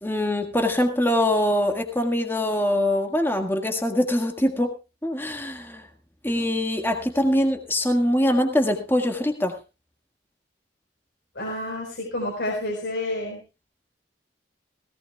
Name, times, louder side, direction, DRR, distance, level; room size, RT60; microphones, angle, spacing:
voice 1, 0.0-4.7 5.0-5.8 6.2-9.6, left 1 dB, 15° left, 4 dB, 1.7 m, -23 dB
voice 2, 11.4-13.4, left 1 dB, 80° left, 0 dB, 4.2 m, -29 dB
18.0 x 17.5 x 2.3 m, 0.28 s
head